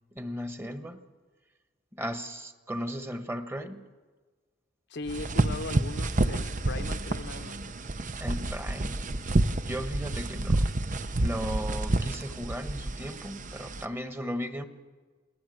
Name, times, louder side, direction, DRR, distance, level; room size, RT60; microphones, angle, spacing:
voice 1, 0.1-1.0 1.9-3.9 8.2-9.1 9.7-10.7 11.2-14.7, equal, 15° right, 8 dB, 1.3 m, -36 dB
voice 2, 4.9-7.6, left 2 dB, 60° left, 8 dB, 0.9 m, -38 dB
sound 1, 5.1-13.9, right 2 dB, 40° right, 0.8 m, -29 dB
28.5 x 19.0 x 7.9 m, 1.4 s
head